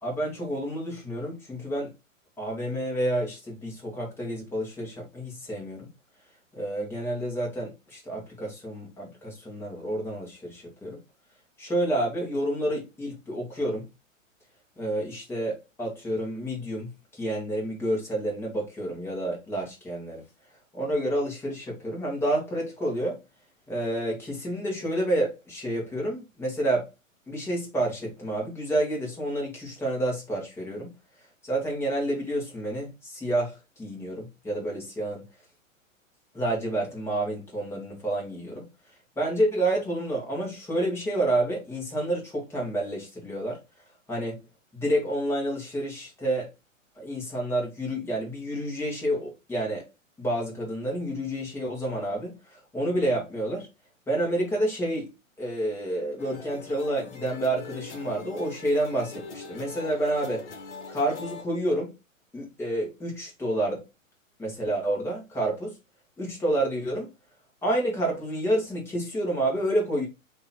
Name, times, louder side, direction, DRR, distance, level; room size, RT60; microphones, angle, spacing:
voice 1, 0.0-1.9 2.4-5.9 6.5-11.0 11.6-13.8 14.8-20.2 20.7-23.2 23.7-26.9 27.3-30.9 31.4-35.2 36.3-38.7 39.2-43.6 44.1-44.4 44.7-46.5 47.0-49.9 50.2-53.7 54.1-55.1 55.4-60.5 60.9-61.9 62.3-63.8 64.4-65.7 66.2-67.1 67.6-70.1, right 1 dB, 5° left, 1.6 m, -29 dB
sound 1, 56.2-61.4, left 4 dB, 60° left, 1.2 m, -42 dB
3.7 x 3.0 x 4.2 m
figure-of-eight pair, 115°, 40 cm